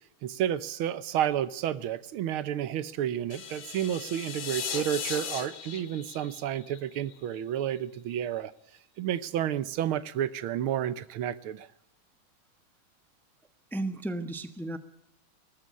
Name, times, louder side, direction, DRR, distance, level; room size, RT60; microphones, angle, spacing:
voice 1, 0.2-8.5 9.0-11.7, right 10 dB, 90° right, 16 dB, 1.8 m, -31 dB
sound 1, 3.3-7.4, left 7 dB, 70° left, 2.4 m, -37 dB
voice 2, 13.7-14.8, right 2 dB, ahead, 10 dB, 0.9 m, -33 dB
19.5 x 14.0 x 9.6 m, 0.83 s
omnidirectional pair, 2.3 m